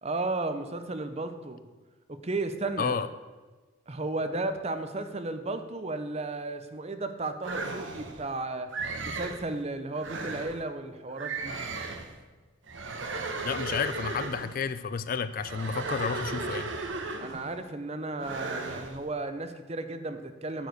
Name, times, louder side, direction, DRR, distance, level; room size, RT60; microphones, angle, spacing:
voice 1, 0.0-1.7 2.1-3.1 3.9-8.7 9.0-11.5 17.2-20.7, right 2 dB, 30° right, 9 dB, 0.7 m, -34 dB
voice 2, 2.8-3.1 13.4-16.7, left 6 dB, 40° left, 13 dB, 0.4 m, -31 dB
sound 1, 7.4-8.2 8.7-9.4 9.9-10.6 11.2-12.1 12.7-14.6 15.4-17.5 18.2-19.0, right 3 dB, 65° right, 1.1 m, -35 dB
10.5 x 4.9 x 8.2 m, 1.3 s
head